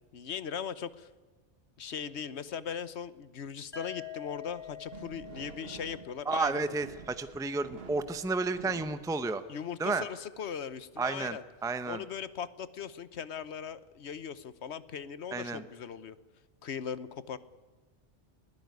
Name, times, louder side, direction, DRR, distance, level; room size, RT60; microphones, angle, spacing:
voice 1, 0.1-1.1 1.8-6.6 9.5-11.4 11.8-16.2 16.6-17.4, left 7 dB, 70° left, 16 dB, 1.2 m, -39 dB
sound 1, 3.7-7.6, left 9 dB, 45° left, 4.3 m, -47 dB
sound 2, 4.3-10.0, right 6 dB, 60° right, 1.3 m, -50 dB
voice 2, 6.3-9.4 9.8-10.0 11.0-12.0 15.3-15.6, right 3 dB, 5° right, 11 dB, 0.7 m, -32 dB
21.0 x 15.0 x 9.6 m, 1.3 s
omnidirectional pair, 1.2 m